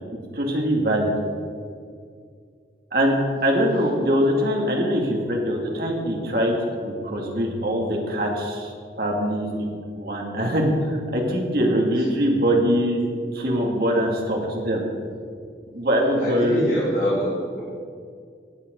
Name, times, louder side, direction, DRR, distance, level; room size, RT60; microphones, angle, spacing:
voice 1, 0.3-1.1 2.9-3.2 3.4-6.6 6.8-8.7 9.0-13.1 13.3-14.8 15.7-16.6, equal, 55° right, 0 dB, 2.4 m, -23 dB
voice 2, 15.9-17.6, equal, 45° left, -7 dB, 3.1 m, -25 dB
17.0 x 9.1 x 5.4 m, 2.2 s
head